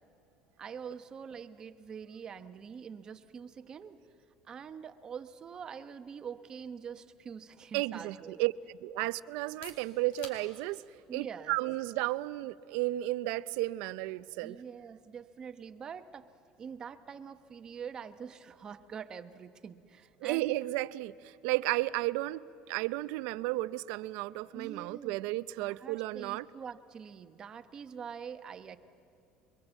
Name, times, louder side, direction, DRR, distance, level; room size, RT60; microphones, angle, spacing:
voice 1, 0.6-4.0 4.4-8.4 11.1-11.6 14.4-16.3 16.6-20.4 24.5-25.2 25.6-28.8, right 7 dB, 35° right, 10 dB, 1.0 m, -45 dB
voice 2, 7.7-10.8 11.1-14.6 20.2-26.5, right 18 dB, 80° right, 16 dB, 0.6 m, -33 dB
sound 1, 9.3-25.0, left 4 dB, 70° left, 3.8 m, -60 dB
26.5 x 23.0 x 8.2 m, 2.6 s
cardioid pair, 125°, 2 cm